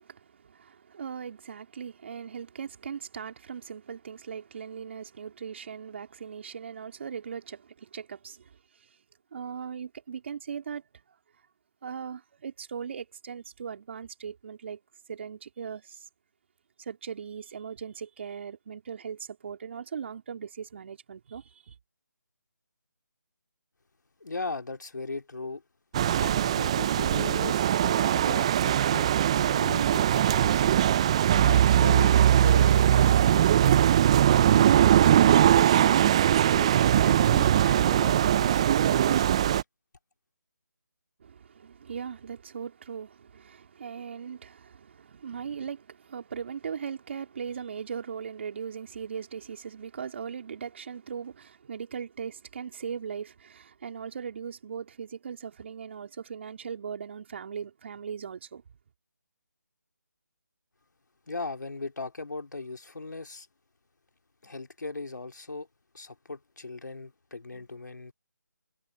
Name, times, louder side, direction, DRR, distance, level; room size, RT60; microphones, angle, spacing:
voice 1, 0.0-8.5 9.3-10.8 11.8-14.8 15.1-16.0 16.8-21.8 41.2-58.6, right 7 dB, 40° right, 3.8 m, -39 dB
voice 2, 24.2-25.6 26.2-30.7 31.3-33.8 34.4-34.7 35.2-35.8 36.3-39.6 61.3-63.5 64.4-65.7 65.9-68.1, left 3 dB, 75° left, 3.0 m, -38 dB
sound 1, 25.9-39.6, right 10 dB, 20° right, 0.4 m, -21 dB
figure-of-eight pair, 160°, 10 cm